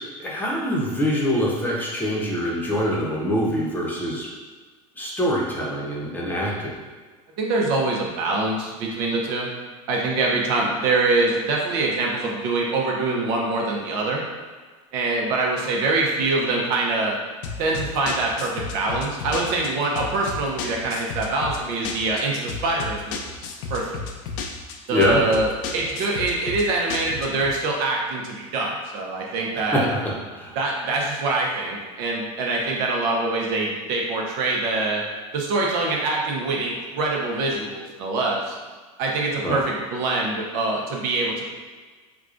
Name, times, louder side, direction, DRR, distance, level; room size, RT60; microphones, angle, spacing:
voice 1, 0.2-4.3 4.9-6.8 24.9-25.2 29.6-30.6 39.4-39.6, equal, 10° left, -5 dB, 0.8 m, -24 dB
voice 2, 7.4-9.5 9.9-14.2 14.9-17.2 17.6-23.2 23.7-24.1 24.9-29.9 30.6-35.0 35.3-38.6 39.0-41.5, right 2 dB, 60° right, -1 dB, 0.8 m, -24 dB
sound 1, 17.4-27.5, left 5 dB, 70° left, 0.5 m, -33 dB
4.7 x 2.3 x 2.5 m, 1.4 s
supercardioid pair, 110°, 17 cm